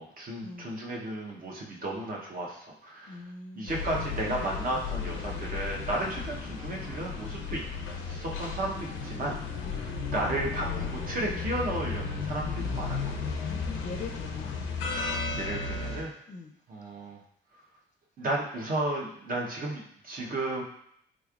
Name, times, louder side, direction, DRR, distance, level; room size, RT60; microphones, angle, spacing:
voice 1, 0.0-3.2 3.5-7.6 8.1-9.4 9.7-13.4 15.3-16.1 16.7-17.2 18.2-20.6, right 1 dB, 45° right, -2 dB, 0.8 m, -34 dB
voice 2, 3.1-3.8 6.0-6.3 9.6-9.9 13.5-14.6 16.3-16.6, left 3 dB, 35° left, 3 dB, 0.5 m, -42 dB
sound 1, 3.7-16.0, left 4 dB, 90° left, 0.5 m, -34 dB
3.6 x 3.1 x 2.4 m, 0.69 s
cardioid pair, 90°, 20 cm